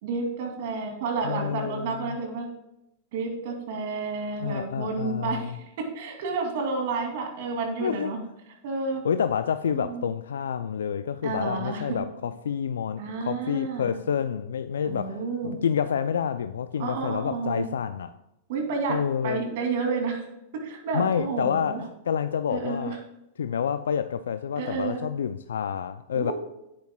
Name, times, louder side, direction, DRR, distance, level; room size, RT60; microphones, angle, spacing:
voice 1, 0.0-2.5 3.1-8.2 8.6-9.0 9.7-10.0 11.2-12.0 13.0-14.0 14.9-15.6 16.8-17.7 18.5-19.0 19.2-20.3 20.5-21.8 22.5-22.9 24.6-25.0 26.1-26.3, right 4 dB, 60° right, 2 dB, 2.6 m, -30 dB
voice 2, 1.2-2.2 4.4-5.6 7.8-8.1 9.0-15.2 15.4-18.1 18.9-19.4 20.9-23.0 23.4-26.3, left 7 dB, 80° left, 11 dB, 0.3 m, -28 dB
10.0 x 9.7 x 2.3 m, 0.88 s
hypercardioid pair, 105°, 0 cm